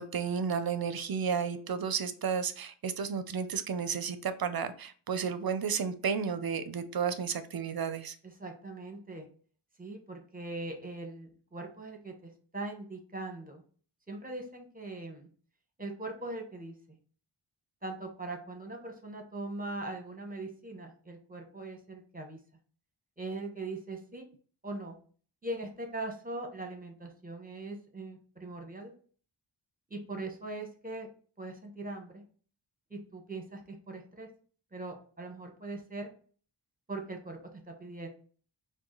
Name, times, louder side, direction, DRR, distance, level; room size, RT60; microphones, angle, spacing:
voice 1, 0.0-8.2, right 6 dB, 50° right, 0.5 m, -32 dB
voice 2, 8.2-9.3 9.8-13.6 14.1-15.3 15.8-16.7 17.8-22.4 23.2-24.3 24.6-25.0 25.4-28.9 29.9-31.1 31.4-32.2 32.9-34.3 34.7-36.1 36.9-37.4 37.7-38.1, right 2 dB, 15° right, 1.0 m, -41 dB
4.6 x 2.3 x 3.8 m
wide cardioid pair, 65°, 49 cm